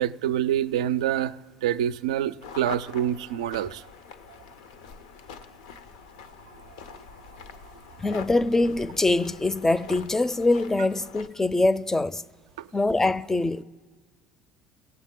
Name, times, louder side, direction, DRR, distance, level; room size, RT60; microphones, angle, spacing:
voice 1, 0.0-1.3 1.6-3.8, right 11 dB, 85° right, 0.3 m, -26 dB
sound 1, 2.4-11.3, left 6 dB, 85° left, 0.6 m, -45 dB
voice 2, 8.0-12.2 12.7-13.6, left 2 dB, 15° left, 0.4 m, -23 dB
18.0 x 7.1 x 3.7 m
hypercardioid pair, 70°, 3 cm